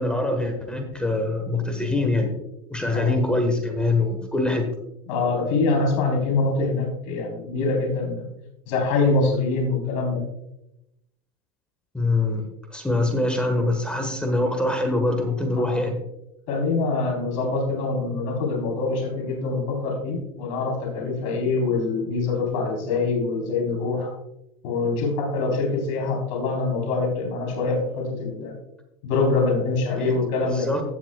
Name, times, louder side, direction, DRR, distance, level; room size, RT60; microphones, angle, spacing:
voice 1, 0.0-2.4 2.7-4.7 11.9-16.0 30.0-30.1 30.4-30.8, left 2 dB, 5° left, 5 dB, 1.3 m, -24 dB
voice 2, 5.1-8.2 8.7-10.2 15.6-15.8 16.5-24.1 24.6-28.6 29.0-30.7, left 3 dB, 65° left, 0 dB, 3.8 m, -24 dB
15.5 x 7.3 x 2.3 m, 0.86 s
supercardioid pair, 140°, 18 cm